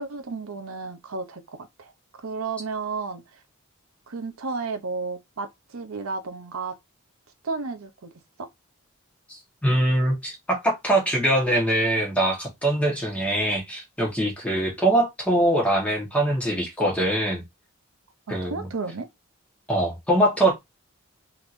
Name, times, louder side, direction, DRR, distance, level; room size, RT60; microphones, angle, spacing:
voice 1, 0.0-1.9 2.2-3.4 4.1-6.8 7.4-8.1 8.4-8.5 18.3-19.1, right 4 dB, 75° right, 0.6 m, -33 dB
voice 2, 9.3-17.4 18.3-18.6 19.7-20.5, right 1 dB, 5° left, 1.2 m, -23 dB
3.4 x 2.9 x 2.5 m
head